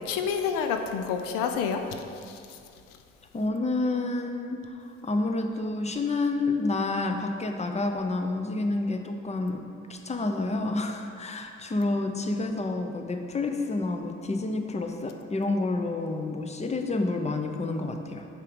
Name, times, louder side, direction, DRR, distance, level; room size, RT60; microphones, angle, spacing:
voice 1, 0.1-1.8 2.3-2.6, left 6 dB, 75° left, 6 dB, 0.6 m, -28 dB
voice 2, 3.3-9.6 9.9-18.3, left 2 dB, 20° left, 5 dB, 0.7 m, -29 dB
5.6 x 5.0 x 5.1 m, 2.4 s
supercardioid pair, 55°, 34 cm